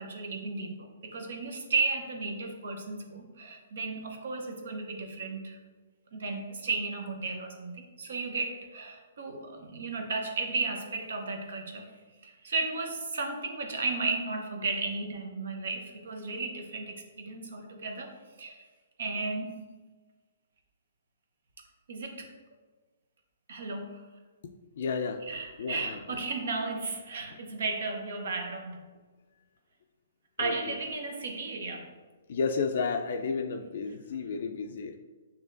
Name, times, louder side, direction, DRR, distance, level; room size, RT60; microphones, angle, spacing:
voice 1, 0.0-5.6 6.1-11.9 12.2-18.1 18.4-18.6 19.0-19.6 21.9-22.3 23.5-24.0 25.2-28.8 30.4-31.9, right 3 dB, 70° right, 3 dB, 0.8 m, -34 dB
voice 2, 24.8-25.2 25.6-26.0 30.4-30.5 32.3-35.0, left 5 dB, 60° left, 5 dB, 0.3 m, -31 dB
7.0 x 2.8 x 2.5 m, 1.3 s
hypercardioid pair, 150°, 0 cm